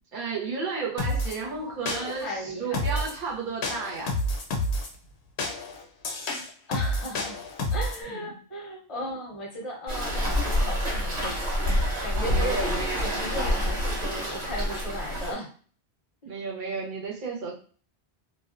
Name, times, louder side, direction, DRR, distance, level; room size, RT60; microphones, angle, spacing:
voice 1, 0.1-4.2 8.1-8.3 12.1-13.2 16.2-17.5, right 4 dB, 50° right, -4 dB, 1.0 m, -33 dB
sound 1, 1.0-1.4 1.9-2.3 2.7-3.2 3.6-4.9 5.4-8.0, left 1 dB, 75° left, 0.8 m, -29 dB
voice 2, 1.8-3.0 6.7-7.4 7.7-11.7 12.0-12.7 13.0-15.5, equal, 35° left, -2 dB, 0.6 m, -36 dB
Waves surf, 9.9-15.3, equal, 85° right, 1.2 m, -27 dB
2.4 x 2.3 x 2.4 m, 0.42 s
omnidirectional pair, 1.1 m